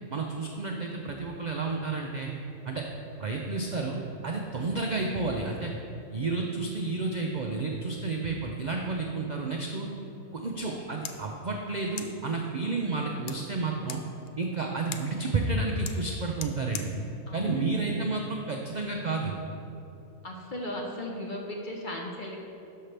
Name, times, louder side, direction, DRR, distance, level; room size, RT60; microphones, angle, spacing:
voice 1, 0.1-2.3 2.6-2.8 3.2-5.7 6.1-9.9 10.3-14.0 14.4-16.9 17.3-19.4, right 3 dB, 70° right, 1 dB, 0.4 m, -31 dB
sound 1, 11.0-18.6, left 8 dB, 85° left, 0.5 m, -46 dB
voice 2, 17.3-17.7 20.2-22.4, left 1 dB, 40° left, -1 dB, 0.8 m, -36 dB
12.5 x 5.7 x 3.3 m, 2.8 s
omnidirectional pair, 1.6 m